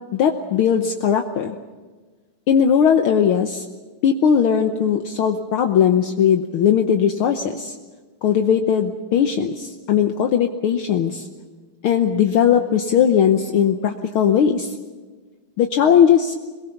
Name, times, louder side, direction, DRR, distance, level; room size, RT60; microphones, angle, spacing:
voice 1, 0.1-1.6 2.5-3.6 4.0-7.7 8.2-11.3 11.8-14.7 15.6-16.4, left 8 dB, 75° left, 5 dB, 1.2 m, -18 dB
22.5 x 21.5 x 7.0 m, 1.4 s
omnidirectional pair, 3.5 m